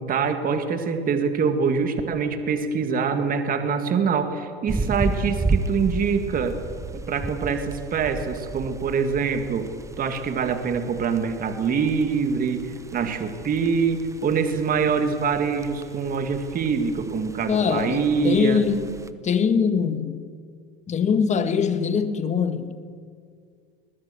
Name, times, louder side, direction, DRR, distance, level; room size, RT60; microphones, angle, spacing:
voice 1, 0.0-6.6 7.1-9.7 10.0-18.6, right 5 dB, 25° right, 2.1 m, -24 dB
sound 1, 4.7-19.1, right 2 dB, 10° right, 1.0 m, -33 dB
voice 2, 17.5-19.0 19.2-20.3 20.9-22.8, left 6 dB, 20° left, 1.6 m, -23 dB
22.0 x 20.0 x 7.0 m
hypercardioid pair, 115°, 31 cm